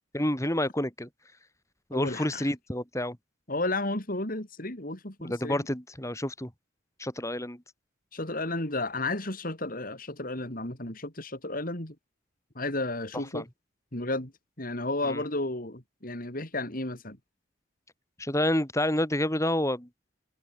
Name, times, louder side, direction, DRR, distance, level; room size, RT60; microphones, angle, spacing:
voice 1, 0.1-1.1 1.9-3.2 5.2-6.5 7.0-7.6 13.3-13.4 15.0-15.2 18.2-19.9, left 1 dB, 15° left, 4.1 m, -29 dB
voice 2, 1.9-2.5 3.5-5.7 8.1-12.0 12.5-13.5 13.9-14.3 14.6-17.2, left 2 dB, 45° left, 4.1 m, -33 dB
open air
head